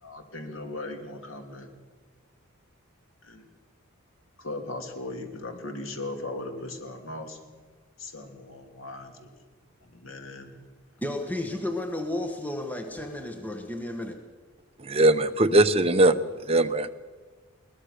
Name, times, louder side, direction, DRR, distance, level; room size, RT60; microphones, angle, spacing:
voice 1, 0.0-1.7 3.2-3.4 4.4-7.4 8.0-9.3 9.8-10.5, left 2 dB, 65° left, 4 dB, 3.0 m, -38 dB
voice 2, 11.0-14.2, left 1 dB, 10° left, 5 dB, 1.4 m, -32 dB
voice 3, 14.8-16.2 16.5-16.9, right 2 dB, 25° right, 8 dB, 0.9 m, -20 dB
21.5 x 19.5 x 6.8 m, 1.4 s
head